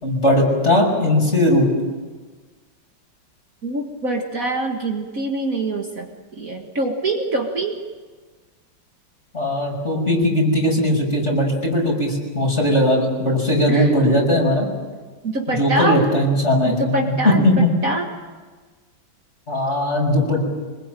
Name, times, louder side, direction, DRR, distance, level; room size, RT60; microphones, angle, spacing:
voice 1, 0.0-1.7 9.3-14.7 15.5-17.0 17.2-17.7 19.5-20.4, left 1 dB, 35° left, 0 dB, 6.5 m, -18 dB
voice 2, 3.6-6.1 6.4-7.8 13.7-13.9 15.2-16.1 16.7-18.1, right 2 dB, 45° right, 2 dB, 2.1 m, -24 dB
25.5 x 21.5 x 9.1 m, 1.4 s
omnidirectional pair, 2.1 m